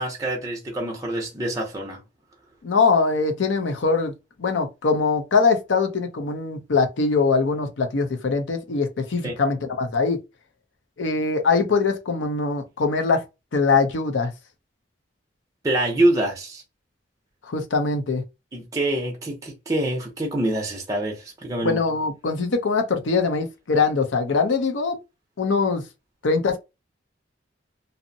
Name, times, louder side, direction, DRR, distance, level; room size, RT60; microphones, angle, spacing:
voice 1, 0.0-2.0 9.2-9.4 15.6-16.6 18.5-21.8, right 1 dB, 15° right, 0.5 m, -25 dB
voice 2, 2.6-4.1 4.4-10.2 11.0-13.2 13.5-14.3 17.5-18.2 21.6-25.0 25.4-25.9 26.2-26.6, left 4 dB, 75° left, 0.5 m, -22 dB
2.6 x 2.0 x 2.6 m
head